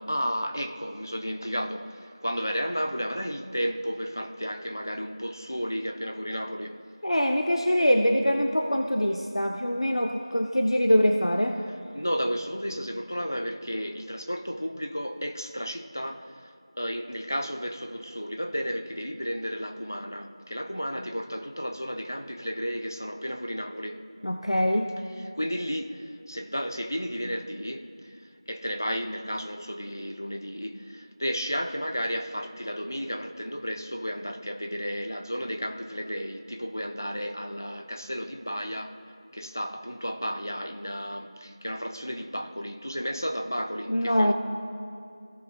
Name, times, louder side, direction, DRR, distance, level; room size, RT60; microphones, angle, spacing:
voice 1, 0.0-6.8 11.9-24.0 25.2-28.2 28.5-39.0 39.3-44.3, equal, 35° left, 0.6 m, -33 dB
voice 2, 7.0-11.6 24.2-24.9 43.9-44.3, equal, 70° left, 0.7 m, -23 dB
16.5 x 5.7 x 2.3 m
figure-of-eight pair, 180°, 3 cm